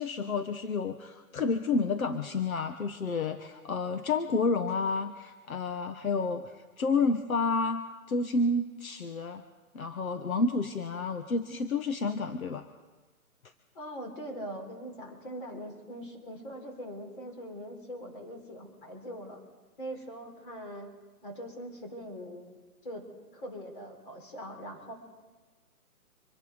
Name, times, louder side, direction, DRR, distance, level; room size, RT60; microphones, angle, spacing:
voice 1, 0.0-9.4 9.7-12.7, left 3 dB, 70° left, 8 dB, 1.3 m, -30 dB
voice 2, 13.8-19.4 19.8-20.9 21.2-22.6 22.8-23.0 23.3-24.9, equal, 35° left, 2 dB, 3.8 m, -42 dB
26.0 x 11.0 x 5.1 m, 1.3 s
hypercardioid pair, 170°, 44 cm